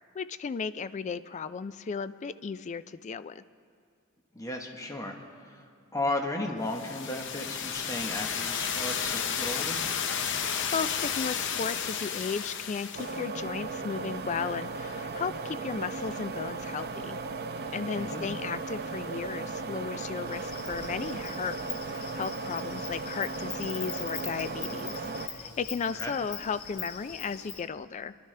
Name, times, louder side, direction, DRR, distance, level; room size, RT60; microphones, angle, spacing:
voice 1, 0.1-3.4 10.2-17.2 17.7-21.6 21.8-28.2, left 5 dB, 35° left, 14 dB, 0.3 m, -35 dB
voice 2, 4.3-9.8 18.0-18.2 25.9-26.1, left 1 dB, 15° left, 2 dB, 1.0 m, -35 dB
sound 1, 6.7-13.2, left 7 dB, 55° left, 0.7 m, -32 dB
sound 2, 12.9-25.3, right 3 dB, 50° right, 0.6 m, -36 dB
Insect, 20.3-27.7, left 7 dB, 80° left, 1.1 m, -42 dB
27.0 x 11.5 x 3.3 m, 2.2 s
head